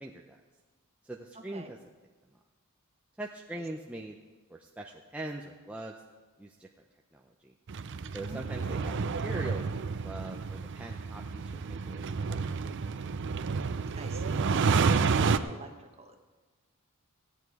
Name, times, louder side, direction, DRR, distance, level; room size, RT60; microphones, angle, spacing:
voice 1, 0.0-0.4 1.0-1.8 3.2-4.2 4.5-6.0 6.4-6.7 7.1-7.5 8.1-12.7, right 1 dB, 5° right, 0 dB, 0.5 m, -42 dB
voice 2, 1.3-1.7 3.5-3.6 8.2-8.4 13.9-16.1, right 2 dB, 30° right, 4 dB, 1.1 m, -47 dB
sound 1, 7.7-15.4, right 5 dB, 55° right, 0.5 m, -30 dB
15.5 x 9.0 x 4.7 m, 1.4 s
head